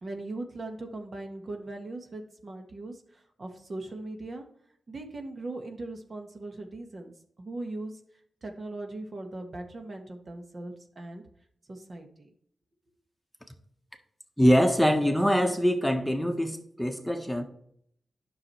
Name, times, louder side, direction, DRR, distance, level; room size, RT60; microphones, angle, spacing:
voice 1, 0.0-4.5 4.9-7.1 7.4-8.0 8.4-11.2 11.7-12.3, right 2 dB, 50° right, 3 dB, 1.5 m, -39 dB
voice 2, 14.4-17.4, equal, ahead, 4 dB, 1.3 m, -23 dB
9.7 x 6.2 x 3.2 m, 0.65 s
cardioid pair, 50°, 0 cm